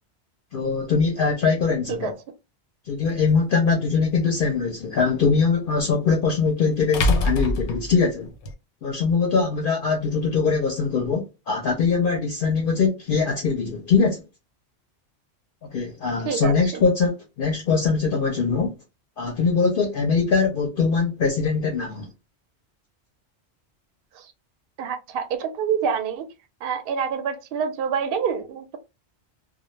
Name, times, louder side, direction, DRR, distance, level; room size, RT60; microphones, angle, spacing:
voice 1, 0.5-2.1 2.9-8.3 8.8-14.2 15.6-18.8 19.2-22.1, left 5 dB, 60° left, 0.6 m, -22 dB
sound 1, 3.1-3.2 5.8-5.9 6.9-8.5, left 1 dB, 90° left, 0.9 m, -23 dB
voice 2, 16.2-16.8 24.1-24.3 24.8-26.3 26.6-28.8, right 7 dB, 65° right, 0.7 m, -27 dB
2.1 x 2.1 x 3.0 m
omnidirectional pair, 1.2 m